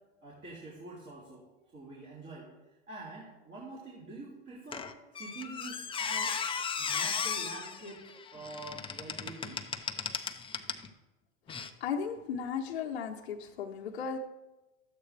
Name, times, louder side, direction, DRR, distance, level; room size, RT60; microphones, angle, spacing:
voice 1, 0.2-1.4 1.7-2.5 2.9-6.4 6.8-9.6, right 2 dB, 35° right, -5 dB, 2.8 m, -46 dB
Squeak, 4.7-10.9 11.5-11.7, left 6 dB, 15° left, 0.6 m, -36 dB
voice 2, 11.8-14.2, left 7 dB, 90° left, -4 dB, 1.0 m, -35 dB
13.0 x 8.3 x 3.3 m, 1.1 s
hypercardioid pair, 110°, 32 cm